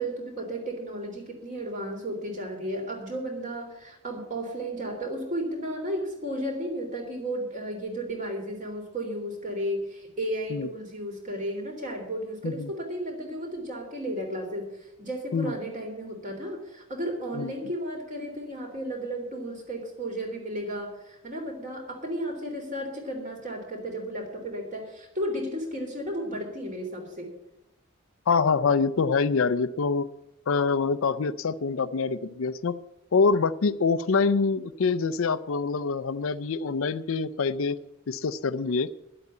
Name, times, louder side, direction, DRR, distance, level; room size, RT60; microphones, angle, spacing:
voice 1, 0.0-27.3, right 1 dB, 35° right, 2 dB, 3.4 m, -34 dB
voice 2, 28.3-30.1 30.5-32.8 33.1-37.8 38.1-38.9, left 4 dB, 70° left, 15 dB, 0.5 m, -25 dB
11.5 x 8.0 x 8.6 m, 0.88 s
head